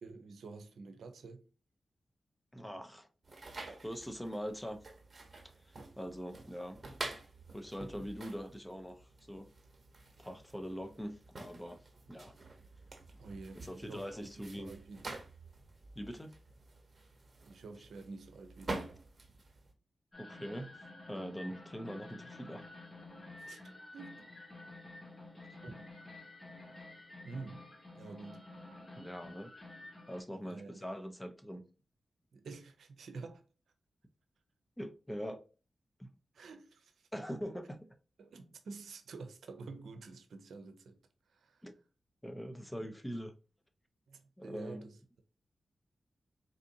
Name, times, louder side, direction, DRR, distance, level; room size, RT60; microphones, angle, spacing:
voice 1, 0.0-1.5 13.2-15.0 17.4-19.0 23.4-23.6 23.9-24.3 25.6-25.9 27.2-28.5 30.3-30.8 32.3-33.4 36.3-37.1 38.2-41.0 41.3-41.6 44.1-45.2, right 3 dB, 80° right, 0.6 m, -49 dB
voice 2, 2.5-3.1 3.8-4.8 5.4-6.8 7.5-9.5 10.2-11.8 12.1-12.4 13.5-14.7 15.9-16.3 20.2-20.8 21.1-22.7 25.5-25.6 29.0-29.5 30.1-31.6 34.8-35.4 36.0-36.1 37.1-37.9 41.6-41.7 42.2-43.3 44.4-44.8, equal, 10° left, 0.8 m, -43 dB
sound 1, 3.2-19.7, right 2 dB, 45° right, 1.2 m, -48 dB
sound 2, 20.1-30.2, left 2 dB, 35° left, 1.8 m, -51 dB
4.1 x 2.5 x 2.7 m
cardioid pair, 45°, 0 cm